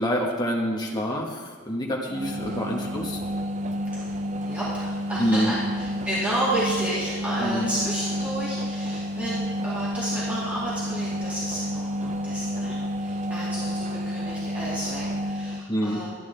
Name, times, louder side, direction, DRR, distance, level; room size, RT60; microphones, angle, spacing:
voice 1, 0.0-3.2 5.2-5.5 7.4-7.7 15.7-16.0, equal, 20° left, -1 dB, 1.3 m, -26 dB
sound 1, 2.1-15.7, equal, 35° right, 0.5 m, -30 dB
voice 2, 2.8-3.2 4.1-16.3, right 1 dB, 5° right, -10 dB, 2.2 m, -32 dB
12.5 x 9.6 x 3.3 m, 1.4 s
head